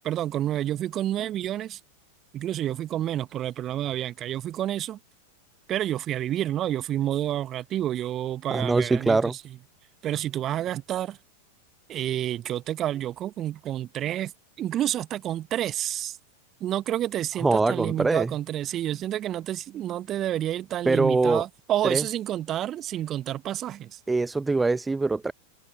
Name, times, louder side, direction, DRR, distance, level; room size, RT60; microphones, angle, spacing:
voice 1, 0.0-1.8 2.3-5.0 5.7-9.6 10.0-11.2 11.9-16.2 16.6-24.0, right 12 dB, 30° right, 1.3 m, -29 dB
voice 2, 8.5-9.3 17.4-18.3 20.9-21.4 21.9-22.0 24.1-25.3, right 3 dB, 10° right, 0.8 m, -23 dB
figure-of-eight pair, 90°, 0 cm